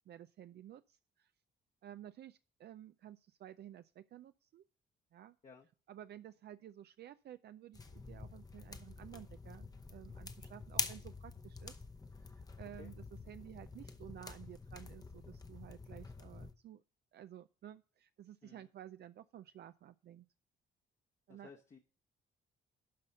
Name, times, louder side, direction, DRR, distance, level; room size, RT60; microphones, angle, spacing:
voice 1, 0.1-1.3 1.8-4.6 5.1-5.4 5.9-11.8 12.3-16.8 17.1-20.3 21.3-21.5, right 11 dB, 55° right, 11 dB, 0.4 m, -53 dB
sound 1, 7.7-16.5, left 3 dB, 20° left, 0.8 m, -46 dB
voice 2, 21.3-21.8, left 5 dB, 35° left, 1 dB, 1.1 m, -56 dB
12.0 x 4.1 x 6.6 m, 0.39 s
cardioid pair, 90°, 20 cm